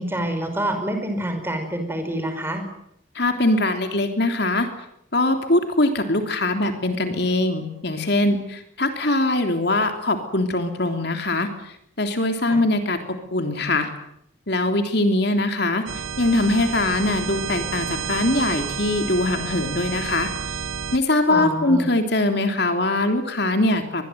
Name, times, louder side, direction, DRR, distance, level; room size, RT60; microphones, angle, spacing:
voice 1, 0.0-2.6 12.5-12.6 21.3-21.9, right 1 dB, 10° right, 6 dB, 5.1 m, -27 dB
voice 2, 3.1-4.7 5.1-11.5 12.0-13.9 14.5-15.8 16.2-20.3 20.9-24.0, left 2 dB, 55° left, 6 dB, 3.3 m, -22 dB
sound 1, 15.9-21.0, right 6 dB, 85° right, 1.2 m, -30 dB
25.5 x 21.5 x 9.4 m, 0.75 s
head